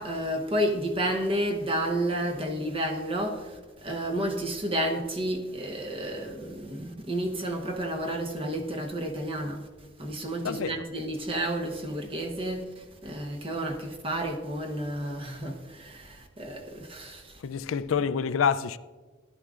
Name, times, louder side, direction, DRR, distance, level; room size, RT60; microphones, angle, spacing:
voice 1, 0.0-3.4 3.8-9.6 10.0-12.6 13.0-15.6 16.4-17.2, right 1 dB, 30° right, 1.0 m, -30 dB
voice 2, 10.4-10.9 17.4-18.8, left 6 dB, 90° left, 0.4 m, -27 dB
14.0 x 11.5 x 2.5 m
head